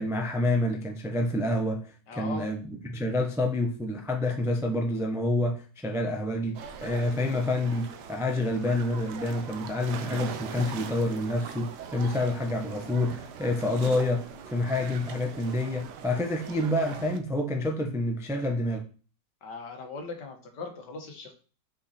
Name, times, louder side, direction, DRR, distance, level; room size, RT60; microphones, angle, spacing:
voice 1, 0.0-18.8, left 1 dB, 5° right, 0.4 m, -28 dB
voice 2, 2.1-2.5 19.4-21.3, left 3 dB, 70° left, 2.0 m, -39 dB
sound 1, 6.5-17.2, right 7 dB, 70° right, 1.3 m, -41 dB
5.6 x 5.1 x 4.3 m
omnidirectional pair, 1.9 m